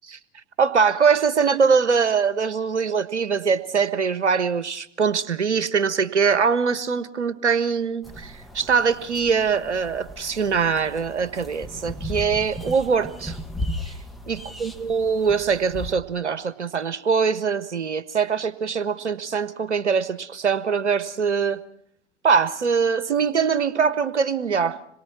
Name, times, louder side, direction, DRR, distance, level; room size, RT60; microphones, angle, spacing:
voice 1, 0.6-13.4 14.3-21.6 22.2-24.8, right 6 dB, 75° right, 13 dB, 1.4 m, -22 dB
sound 1, 8.0-15.9, left 1 dB, ahead, 1.6 m, -36 dB
26.5 x 22.5 x 4.4 m, 0.67 s
figure-of-eight pair, 90°, 35 cm